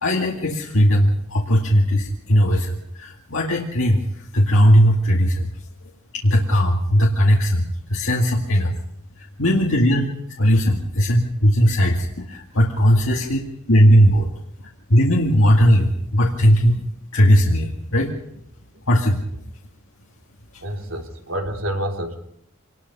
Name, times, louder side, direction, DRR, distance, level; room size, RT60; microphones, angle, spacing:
voice 1, 0.0-5.5 6.2-7.6 7.9-8.7 9.4-10.1 10.4-13.4 13.7-14.3 14.9-16.9 17.1-18.1 18.9-19.2, equal, 75° left, -1 dB, 2.3 m, -17 dB
voice 2, 20.6-22.2, right 1 dB, 70° right, 2 dB, 3.4 m, -28 dB
25.5 x 20.5 x 5.6 m, 0.73 s
head